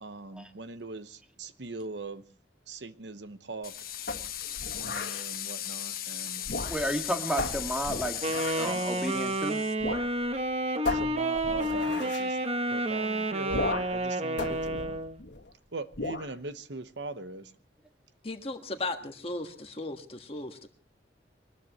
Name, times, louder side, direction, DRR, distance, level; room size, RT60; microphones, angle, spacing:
voice 1, 0.0-2.2 2.7-3.7 4.7-6.5 10.8-12.4 12.7-15.0 15.7-17.5, right 3 dB, 75° right, 1.0 m, -40 dB
sound 1, 3.6-9.7, left 11 dB, 50° left, 1.3 m, -37 dB
sound 2, 4.1-5.3 6.4-7.0 7.4-8.8 9.8-10.1 10.4-10.5 10.8-12.3 13.5-14.0 14.4-15.5 15.9-16.3, left 2 dB, 85° left, 1.8 m, -35 dB
voice 2, 6.7-8.2 8.5-9.6, equal, 5° right, 1.9 m, -32 dB
Wind instrument woodwind instrument, 8.2-15.2, right 1 dB, 35° right, 1.0 m, -30 dB
voice 3, 18.2-20.7, left 2 dB, 30° left, 1.5 m, -36 dB
23.5 x 20.0 x 3.0 m
head